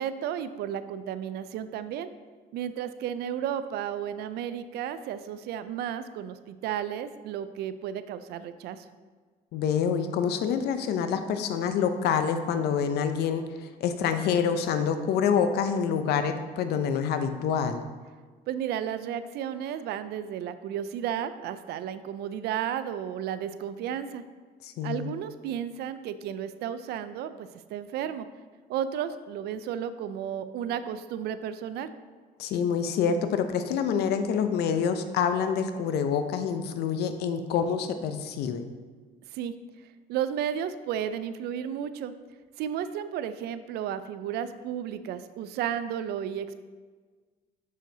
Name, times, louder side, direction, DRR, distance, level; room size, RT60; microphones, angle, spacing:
voice 1, 0.0-2.1 2.5-8.8 18.5-24.2 24.8-28.3 28.7-31.9 39.3-39.5 40.1-42.1 42.6-46.5, right 9 dB, 75° right, 12 dB, 0.4 m, -33 dB
voice 2, 9.5-17.9 24.6-25.1 32.4-38.7, left 7 dB, 75° left, 9 dB, 0.6 m, -27 dB
6.3 x 6.3 x 2.7 m, 1.5 s
cardioid pair, 110°, 17 cm